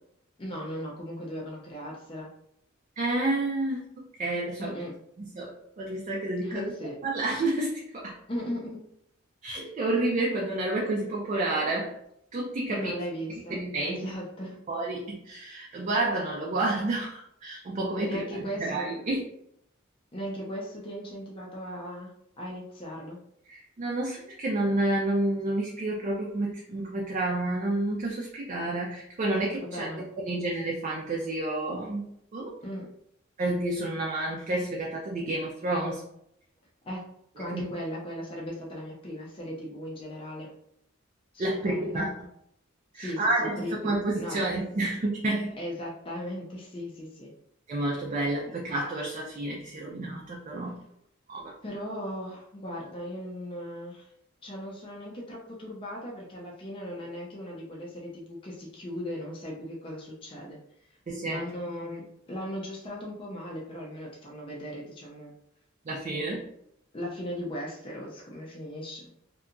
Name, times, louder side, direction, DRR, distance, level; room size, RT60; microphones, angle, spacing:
voice 1, 0.4-2.3 4.6-4.9 6.4-7.0 8.3-8.8 12.7-13.6 13.9-14.6 18.0-18.9 20.1-22.1 22.4-23.2 29.6-30.0 32.6-32.9 36.8-37.0 37.4-40.5 41.3-42.1 42.9-44.4 45.6-47.3 48.4-48.5 51.6-54.1 54.4-60.6 61.2-65.3 66.9-69.1, equal, 25° left, -3 dB, 0.5 m, -37 dB
voice 2, 3.0-3.8 4.2-4.8 5.2-6.7 7.0-8.2 9.4-11.9 12.3-12.9 13.5-14.0 14.7-19.2 23.5-29.9 30.2-32.5 33.4-36.0 37.5-37.6 41.4-42.2 42.9-45.5 47.7-50.8 51.3-51.5 61.1-61.4 65.9-66.5, right 2 dB, 35° right, -2 dB, 0.4 m, -30 dB
2.7 x 2.2 x 2.5 m, 0.75 s
head